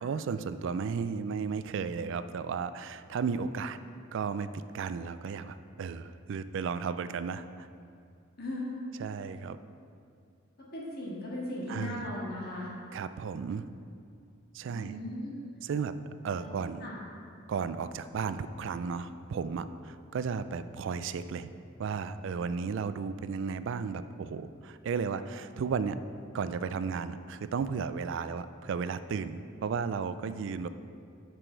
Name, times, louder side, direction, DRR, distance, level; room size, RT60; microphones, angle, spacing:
voice 1, 0.0-3.8 4.1-7.7 9.0-9.6 11.7-12.1 12.9-13.7 14.5-15.0 15.6-16.0 16.2-16.9 17.5-21.5 21.8-26.0 26.3-30.7, right 5 dB, 65° right, 13 dB, 0.3 m, -34 dB
voice 2, 8.4-8.7 10.6-12.7 14.6-15.3 16.3-16.5 16.8-16.9, left 1 dB, 50° left, -5 dB, 1.8 m, -37 dB
7.8 x 6.1 x 4.5 m, 2.4 s
head